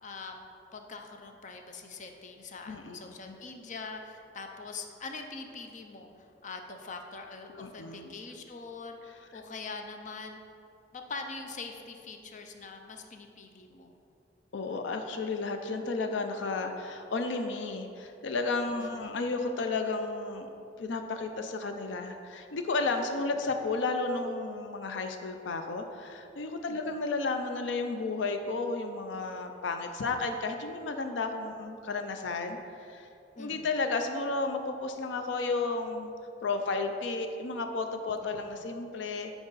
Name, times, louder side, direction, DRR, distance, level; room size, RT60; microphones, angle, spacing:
voice 1, 0.0-0.3 0.7-6.1 6.4-9.0 9.3-10.4 10.9-13.9 18.8-19.2 26.7-27.0 33.3-33.7 38.2-38.6, left 4 dB, 45° left, 4 dB, 0.6 m, -43 dB
voice 2, 2.7-3.4 7.5-8.1 14.5-20.5 20.8-33.1 33.4-36.1 36.4-39.3, left 3 dB, 85° left, 6 dB, 0.5 m, -33 dB
8.9 x 4.8 x 4.0 m, 2.7 s
head